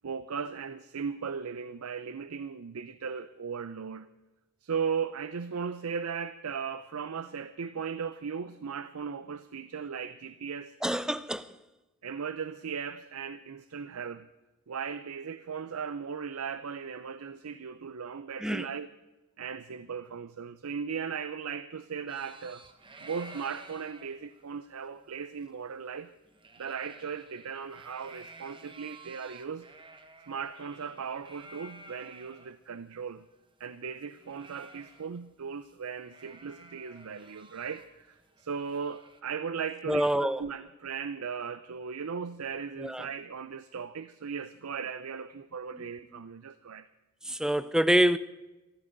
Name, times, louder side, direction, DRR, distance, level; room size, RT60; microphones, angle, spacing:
voice 1, 0.0-4.1 4.6-10.7 12.0-14.3 14.7-18.9 19.4-22.6 23.0-26.1 26.6-29.7 30.3-33.2 33.6-46.9, right 6 dB, 80° right, 0.6 m, -37 dB
voice 2, 10.8-11.5 18.4-18.7 39.9-40.4 42.8-43.1 45.7-45.9 47.2-48.2, right 1 dB, 5° right, 0.5 m, -26 dB
sound 1, 22.1-32.5 32.9-33.0 33.2-35.4 35.6-35.8 36.0-39.2, right 3 dB, 25° right, 1.1 m, -53 dB
23.0 x 14.5 x 4.0 m
head